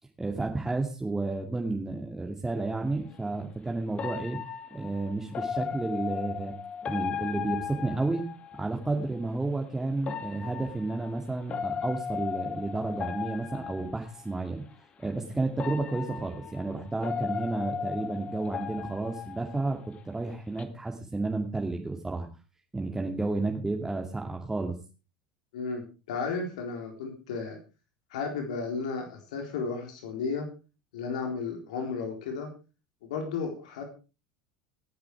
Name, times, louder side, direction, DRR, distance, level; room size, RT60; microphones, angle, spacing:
voice 1, 0.2-4.4 4.7-6.5 6.9-8.2 8.5-14.6 15.0-19.8 20.0-22.3 22.7-24.8, right 3 dB, 10° right, 1 dB, 2.5 m, -31 dB
sound 1, 2.5-2.6 4.0-8.7 10.0-14.2 15.0-15.1 15.6-20.0 20.3-20.6, left 7 dB, 30° left, 2.3 m, -36 dB
voice 2, 25.5-27.6 28.1-30.5 30.9-32.5 33.0-33.8, left 4 dB, 65° left, 3 dB, 3.9 m, -33 dB
18.0 x 10.5 x 4.8 m, 0.34 s
figure-of-eight pair, 75°, 4 cm